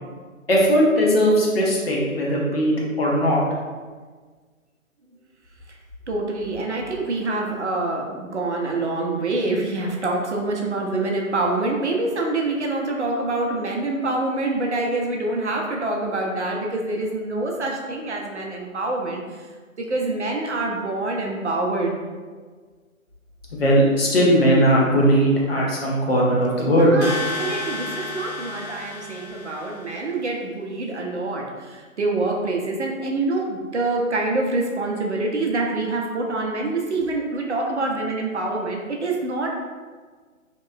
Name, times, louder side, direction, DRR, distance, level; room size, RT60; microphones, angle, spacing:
voice 1, 0.5-3.4 23.5-26.9, equal, 45° left, -4 dB, 0.7 m, -18 dB
voice 2, 6.1-19.5 19.8-22.0 26.7-39.5, right 2 dB, 55° right, 0 dB, 0.5 m, -26 dB
sound 1, 27.0-29.9, left 3 dB, 80° left, 1.0 m, -32 dB
2.9 x 2.9 x 2.2 m, 1.5 s
figure-of-eight pair, 140°, 42 cm